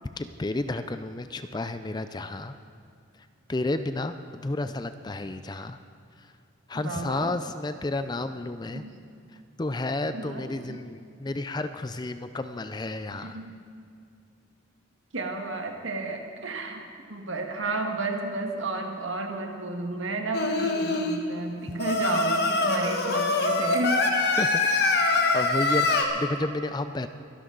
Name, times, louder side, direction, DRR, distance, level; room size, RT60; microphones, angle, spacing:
voice 1, 0.2-2.5 3.5-5.8 6.2-6.3 6.7-8.8 9.6-13.4 24.4-25.0 25.3-27.1, left 2 dB, 20° left, 10 dB, 0.4 m, -31 dB
voice 2, 6.7-7.3 8.7-8.9 10.1-10.8 13.1-13.6 15.1-24.5 24.8-25.0 25.7-25.8, right 2 dB, 75° right, 3 dB, 1.6 m, -32 dB
Singing, 20.3-21.2 21.8-26.0, left 3 dB, 50° left, 1.3 m, -24 dB
23.5 x 11.5 x 3.9 m, 2.4 s
head